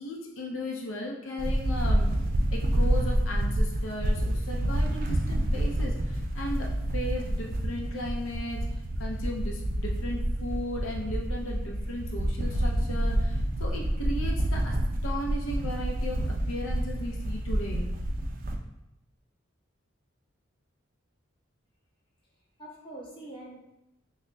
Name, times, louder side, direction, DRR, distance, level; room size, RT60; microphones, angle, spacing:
voice 1, 0.0-2.1 2.5-8.6 9.0-14.8 15.0-17.9, left 1 dB, 75° left, 0 dB, 0.5 m, -36 dB
sound 1, 1.4-18.6, right 1 dB, 45° right, 0.4 m, -28 dB
voice 2, 22.2-23.6, right 1 dB, 25° left, -5 dB, 0.9 m, -45 dB
6.1 x 2.1 x 2.2 m, 0.88 s
head